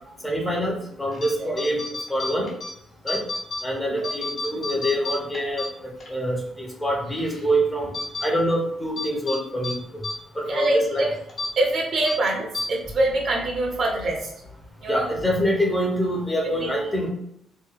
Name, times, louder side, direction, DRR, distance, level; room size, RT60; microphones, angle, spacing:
voice 1, 0.2-1.8 2.1-2.5 3.0-3.3 3.6-8.0 8.2-10.0 10.3-11.1 14.9-17.1, equal, 10° left, 0 dB, 0.7 m, -25 dB
sound 1, 1.1-1.3 1.6-2.7 3.1-3.6 4.0-6.1 6.5-6.6 7.1-7.5 7.9-8.3 9.0-9.4 9.6-9.7 10.0-10.1 10.5-10.6 11.3-11.5 12.0-12.2 12.5-12.7, left 2 dB, 45° left, 0.7 m, -31 dB
voice 2, 10.5-11.1 11.6-14.3 14.8-15.1 16.6-16.7, right 2 dB, 55° right, 0 dB, 0.7 m, -24 dB
2.6 x 2.2 x 2.5 m, 0.75 s
cardioid pair, 90°, 0 cm